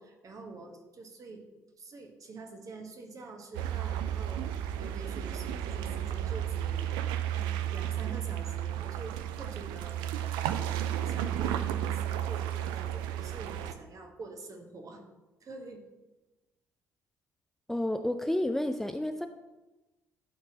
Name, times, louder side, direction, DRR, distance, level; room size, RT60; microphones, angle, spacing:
voice 1, 0.0-1.5 1.8-7.0 7.3-10.6 11.0-15.0 15.4-15.9, right 3 dB, 45° right, 3 dB, 1.3 m, -46 dB
sound 1, 3.5-13.7, right 11 dB, 65° right, 0.4 m, -33 dB
voice 2, 17.7-19.3, left 1 dB, 5° left, 7 dB, 0.5 m, -30 dB
11.5 x 4.4 x 2.9 m, 1.1 s
figure-of-eight pair, 45°, 8 cm